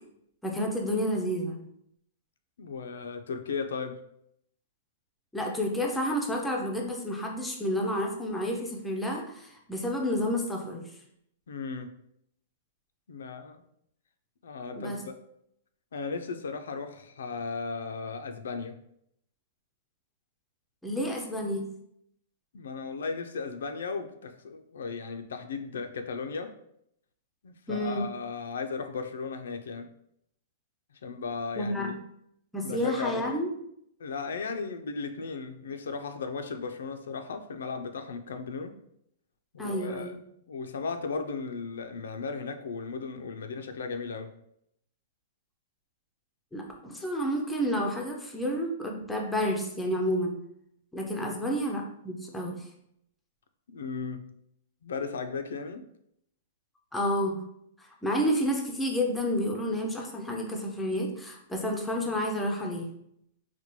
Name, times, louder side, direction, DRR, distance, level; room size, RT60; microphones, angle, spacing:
voice 1, 0.4-1.6 5.3-10.9 14.8-15.0 20.8-21.7 27.7-28.1 31.6-31.9 32.5-33.5 39.6-40.2 46.5-50.4 50.9-52.7 56.9-57.4 58.0-62.9, equal, 5° left, 0 dB, 0.4 m, -30 dB
voice 2, 2.6-4.0 11.5-11.9 13.1-13.6 14.4-15.2 15.9-18.8 22.5-26.5 27.4-29.9 31.0-31.9 32.6-33.2 34.0-38.7 39.5-40.1 40.5-44.3 51.2-51.4 53.7-54.3 54.8-55.9, left 4 dB, 90° left, 7 dB, 0.4 m, -36 dB
4.2 x 2.2 x 3.0 m, 0.73 s
hypercardioid pair, 175°, 0 cm